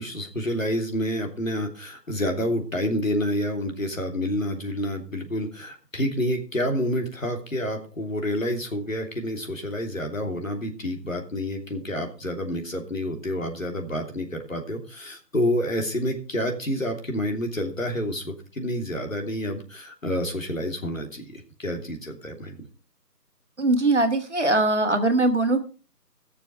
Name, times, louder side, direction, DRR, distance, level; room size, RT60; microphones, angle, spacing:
voice 1, 0.0-22.6, left 1 dB, 55° left, 3 dB, 3.1 m, -28 dB
voice 2, 23.6-25.6, right 2 dB, 45° right, 6 dB, 1.8 m, -21 dB
17.5 x 7.0 x 5.0 m, 0.36 s
figure-of-eight pair, 165°, 49 cm